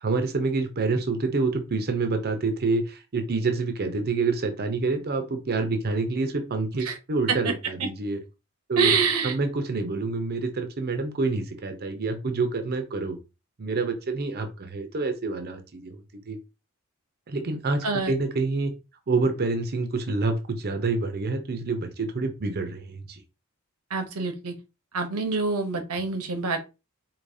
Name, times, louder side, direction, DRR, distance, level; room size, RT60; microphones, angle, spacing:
voice 1, 0.0-8.2 8.7-8.9 9.2-13.2 13.6-16.0 16.3-16.4 17.3-18.7 19.1-23.2, right 3 dB, 45° right, 6 dB, 0.6 m, -27 dB
voice 2, 8.8-9.3 17.8-18.1 23.9-24.5 24.9-26.6, right 5 dB, 85° right, 6 dB, 1.0 m, -26 dB
4.7 x 2.9 x 2.7 m, 0.28 s
head